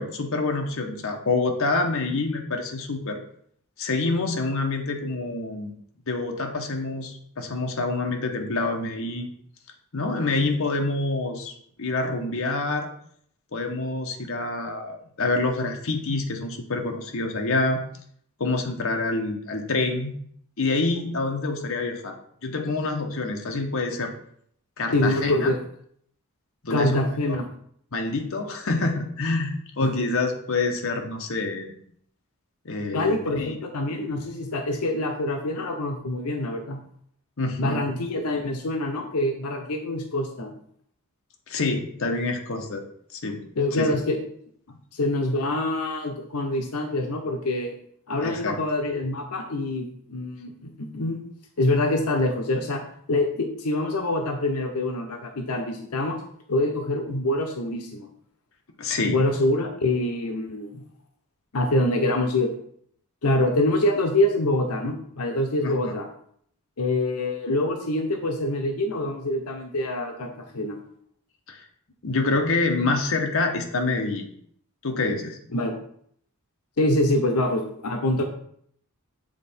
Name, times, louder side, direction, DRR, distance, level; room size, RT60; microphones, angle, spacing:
voice 1, 0.0-3.2 3.8-5.7 6.1-9.3 9.9-11.5 11.8-12.9 13.5-17.8 18.4-20.2 20.6-22.2 22.4-24.1 24.8-25.5 26.6-27.4 27.9-31.7 32.6-33.6 37.4-37.8 41.5-42.8 43.1-43.4 43.7-43.9 44.7-44.8 48.2-48.5 58.8-59.2 65.6-65.9 71.5-71.6 72.0-74.3 74.8-75.4, left 3 dB, 65° left, 3 dB, 0.9 m, -27 dB
voice 2, 24.9-25.6 26.7-27.5 29.8-29.9 32.9-36.8 37.6-40.5 43.6-44.2 44.9-47.8 48.1-51.2 51.6-52.8 53.1-56.2 56.5-58.1 59.0-60.8 61.5-62.5 63.2-66.1 66.8-70.8 75.5-75.7 76.8-78.2, left 1 dB, 90° left, 4 dB, 0.8 m, -25 dB
7.6 x 3.7 x 4.3 m, 0.65 s
head